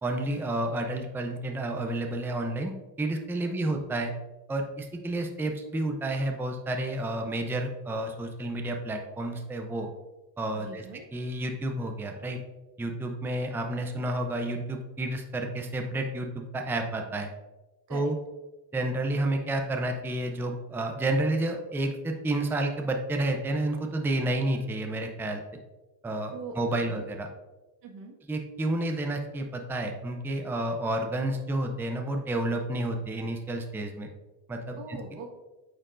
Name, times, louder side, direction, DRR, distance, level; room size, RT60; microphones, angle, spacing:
voice 1, 0.0-4.1 4.5-9.9 10.4-10.8 11.1-12.4 12.8-17.3 17.9-18.1 18.7-25.4 26.0-27.3 28.3-34.1 34.5-35.0, right 1 dB, 5° right, 3 dB, 0.4 m, -30 dB
voice 2, 3.4-3.8 10.5-11.0 17.9-18.1 26.3-27.0 27.8-28.1 34.8-35.3, right 4 dB, 80° right, 1 dB, 1.4 m, -42 dB
8.8 x 4.5 x 2.4 m, 1.1 s
cardioid pair, 130°, 41 cm